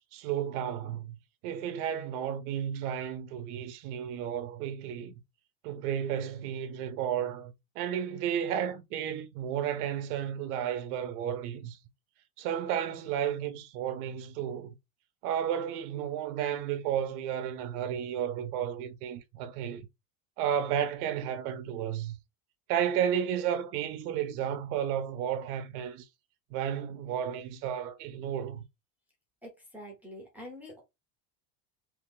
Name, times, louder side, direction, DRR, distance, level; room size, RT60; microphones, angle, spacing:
voice 1, 0.1-1.2 1.4-5.1 5.6-11.8 12.4-14.7 15.2-19.9 20.4-22.2 22.7-26.1 26.5-28.6, right 9 dB, 70° right, 0.9 m, -32 dB
voice 2, 29.4-30.8, equal, 5° right, 0.9 m, -46 dB
3.1 x 2.8 x 3.7 m
cardioid pair, 160°, 46 cm